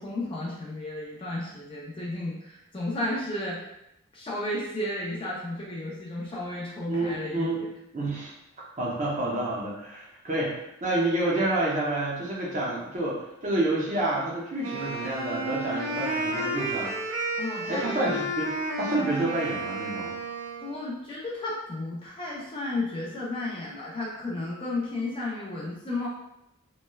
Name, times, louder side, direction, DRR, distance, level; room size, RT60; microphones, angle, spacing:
voice 1, 0.0-3.7 4.1-7.7 17.4-17.9 20.6-26.1, left 2 dB, 25° left, -4 dB, 0.4 m, -33 dB
voice 2, 6.9-7.6 7.9-8.3 8.8-17.0 17.7-20.2, right 2 dB, 35° right, -5 dB, 0.6 m, -29 dB
Wind instrument woodwind instrument, 14.6-20.8, right 2 dB, 85° right, 0.6 m, -32 dB
3.0 x 2.1 x 2.2 m, 0.84 s
head